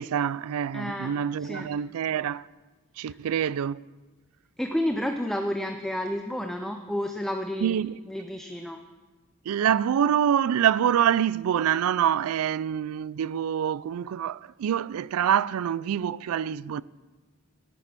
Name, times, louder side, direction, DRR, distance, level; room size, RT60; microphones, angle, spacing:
voice 1, 0.0-2.5 3.0-3.8 7.6-8.0 9.5-16.8, right 9 dB, 80° right, 0.3 m, -26 dB
voice 2, 0.7-1.1 1.4-1.7 3.1-3.2 4.6-7.8 8.1-8.8, left 1 dB, ahead, 0.5 m, -30 dB
11.0 x 11.0 x 6.0 m
head